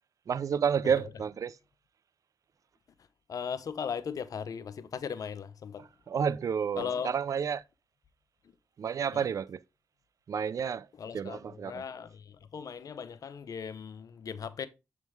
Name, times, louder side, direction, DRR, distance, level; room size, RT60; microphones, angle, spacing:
voice 1, 0.3-1.6 5.8-7.6 8.8-9.6 10.3-10.9 11.1-11.8, right 7 dB, 60° right, 0.4 m, -30 dB
voice 2, 3.3-5.9 6.8-7.2 9.1-9.3 11.0-14.7, left 7 dB, 70° left, 0.7 m, -38 dB
7.2 x 3.6 x 4.6 m
supercardioid pair, 50°, 6 cm